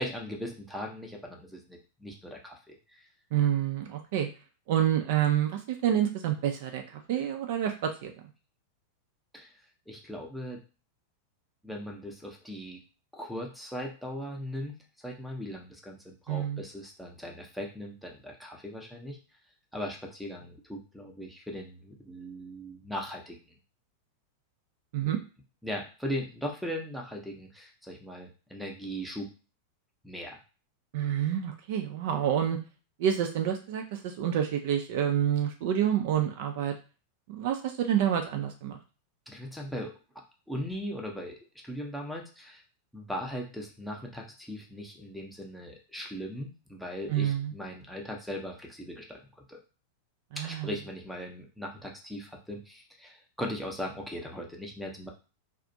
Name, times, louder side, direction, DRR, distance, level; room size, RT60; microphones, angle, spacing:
voice 1, 0.0-3.0 9.3-9.5 9.9-10.6 11.6-12.8 13.1-14.8 15.0-19.2 19.7-23.4 25.0-25.1 25.6-29.3 30.0-30.4 39.3-39.9 40.5-41.4 41.6-42.6 42.9-49.2 49.5-49.6 50.4-55.1, equal, ahead, -1 dB, 0.6 m, -39 dB
voice 2, 3.3-4.3 4.7-8.1 16.3-16.6 24.9-25.2 30.9-32.6 33.0-36.7 37.3-38.8 47.1-47.5 50.3-50.7, right 10 dB, 50° right, 5 dB, 0.4 m, -28 dB
2.4 x 2.0 x 2.6 m, 0.34 s
figure-of-eight pair, 90°, 0 cm